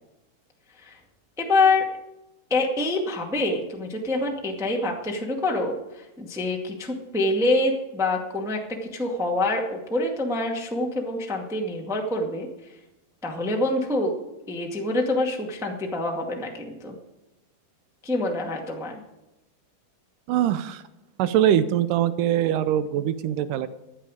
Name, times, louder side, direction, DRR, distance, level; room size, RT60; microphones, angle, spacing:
voice 1, 1.4-1.8 2.5-12.5 13.2-14.2 14.5-16.9 18.0-19.0, left 2 dB, 5° right, 0 dB, 0.4 m, -26 dB
voice 2, 20.3-20.8 21.2-23.7, right 11 dB, 80° right, 13 dB, 2.0 m, -22 dB
15.5 x 10.5 x 5.0 m, 0.96 s
omnidirectional pair, 4.3 m